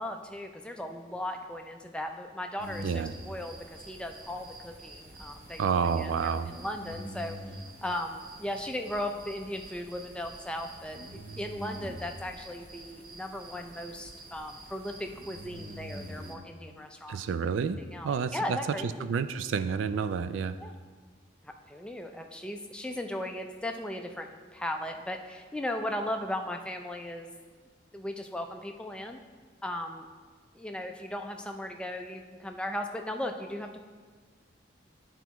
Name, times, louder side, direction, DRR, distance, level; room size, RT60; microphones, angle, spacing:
voice 1, 0.0-5.6 6.0-7.4 7.8-17.2 17.9-18.9 20.6-20.7 21.4-24.3 24.5-27.3 27.9-29.2 29.6-30.1 30.5-33.8, left 1 dB, 5° left, 4 dB, 0.4 m, -37 dB
sound 1, 2.6-16.4, right 1 dB, 50° right, 0.8 m, -46 dB
voice 2, 2.8-3.1 5.6-6.5 17.1-18.6 19.0-20.6, right 6 dB, 90° right, 12 dB, 0.3 m, -29 dB
11.5 x 4.5 x 3.0 m, 1.5 s
head